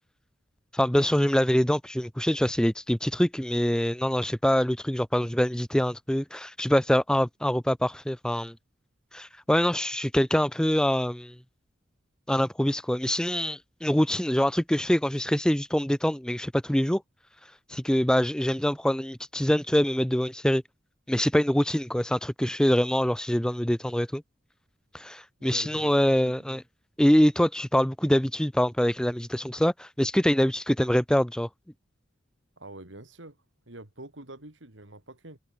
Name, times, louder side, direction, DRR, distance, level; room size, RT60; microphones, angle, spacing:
voice 1, 0.7-8.6 9.1-11.4 12.3-17.0 17.7-20.6 21.1-24.2 24.9-26.6 27.0-31.5, equal, 5° left, 0.5 m, -24 dB
voice 2, 25.4-26.4 32.6-33.4 33.7-35.4, right 2 dB, 85° right, 3.4 m, -46 dB
head